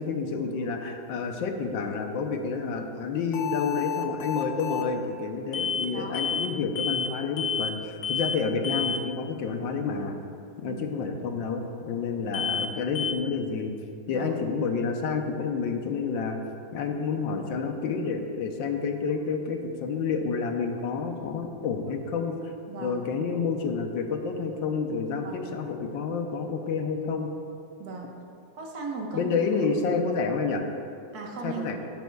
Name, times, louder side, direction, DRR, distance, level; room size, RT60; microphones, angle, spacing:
voice 1, 0.0-10.2 10.6-13.7 14.1-16.4 16.7-22.3 22.8-27.3 29.1-30.6 31.4-31.8, left 5 dB, 90° left, 4 dB, 1.5 m, -29 dB
sound 1, 3.3-4.9 5.5-5.9 6.1-6.5 6.8-7.1 7.4-7.7 8.0-8.4 8.6-9.0 12.3-12.7 13.0-13.1, left 7 dB, 75° left, 0.7 m, -30 dB
voice 2, 5.9-6.3 10.6-10.8 14.1-14.3 22.7-23.0 25.2-25.5 27.8-28.2 28.6-29.3 31.1-31.6, right 4 dB, 60° right, 0 dB, 1.6 m, -37 dB
11.5 x 10.5 x 2.3 m, 2.5 s
omnidirectional pair, 2.0 m